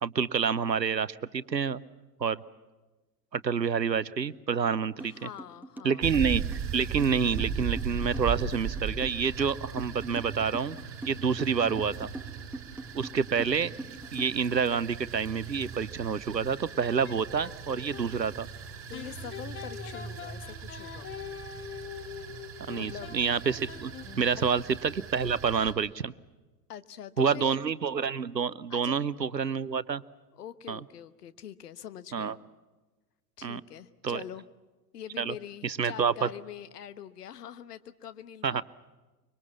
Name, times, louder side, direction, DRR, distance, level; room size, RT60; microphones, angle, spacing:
voice 1, 0.0-1.8 2.2-2.4 3.3-5.3 5.8-10.8 11.1-12.1 12.9-13.7 14.1-18.5 22.7-26.1 27.2-30.0 30.7-30.8 32.1-32.3 33.4-33.6 34.0-34.2 35.2-35.3 35.6-36.3 38.4-38.6, right 6 dB, 90° right, 19 dB, 0.7 m, -28 dB
voice 2, 5.0-6.0 18.9-21.1 22.7-23.1 24.3-24.4 26.7-27.6 28.7-29.0 30.3-32.4 33.4-34.4 34.9-38.6, left 10 dB, 65° left, 13 dB, 1.2 m, -44 dB
sound 1, 5.0-5.1 5.4-14.6, right 2 dB, 5° right, 1.4 m, -42 dB
sound 2, 6.0-25.7, right 7 dB, 25° right, 3.9 m, -38 dB
sound 3, 16.7-18.1 18.9-24.4, left 8 dB, 25° left, 1.7 m, -44 dB
25.0 x 23.5 x 7.2 m, 1.2 s
figure-of-eight pair, 90°, 49 cm